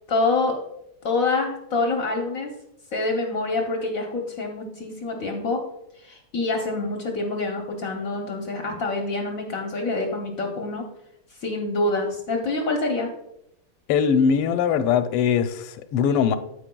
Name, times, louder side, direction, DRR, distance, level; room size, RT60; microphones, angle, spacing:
voice 1, 0.1-0.5 1.0-2.5 2.9-5.6 6.0-10.8 11.4-13.1, left 3 dB, 60° left, 2 dB, 0.9 m, -26 dB
voice 2, 13.9-16.4, left 7 dB, 85° left, 10 dB, 1.5 m, -21 dB
14.0 x 4.8 x 2.2 m, 0.82 s
omnidirectional pair, 2.4 m